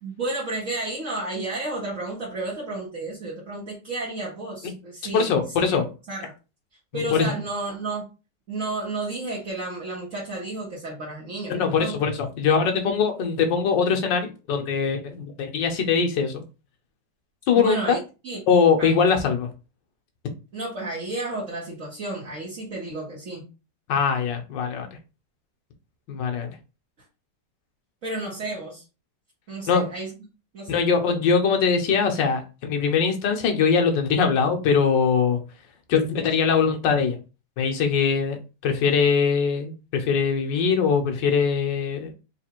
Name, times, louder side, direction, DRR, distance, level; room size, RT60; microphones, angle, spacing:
voice 1, 0.0-5.3 5.6-5.8 6.1-6.3 6.9-8.1 8.5-12.0 17.5-18.4 18.8-19.0 20.5-23.5 28.0-28.8 29.5-30.1 30.5-30.8, right 2 dB, 50° right, -5 dB, 1.5 m, -32 dB
voice 2, 5.1-5.8 6.9-7.3 11.5-16.4 17.5-18.0 18.5-19.5 23.9-24.9 26.1-26.6 29.7-29.8 30.7-35.4 35.9-37.2 37.6-38.4 38.6-42.1, left 6 dB, 80° left, 4 dB, 1.6 m, -22 dB
3.8 x 2.5 x 4.4 m, 0.31 s
omnidirectional pair, 1.9 m